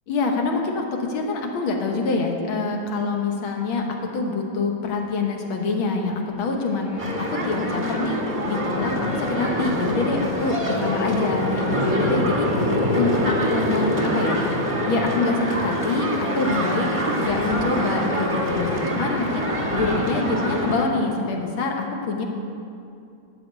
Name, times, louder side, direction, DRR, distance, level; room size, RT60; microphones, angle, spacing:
voice 1, 0.1-8.2 8.5-12.5 12.9-14.4 14.8-22.2, left 3 dB, 75° left, 2 dB, 2.0 m, -25 dB
sound 1, 6.3-11.5, left 1 dB, 20° left, 2.0 m, -36 dB
sound 2, 7.0-20.8, equal, 20° right, 1.0 m, -25 dB
11.5 x 5.4 x 8.9 m, 2.6 s
omnidirectional pair, 2.3 m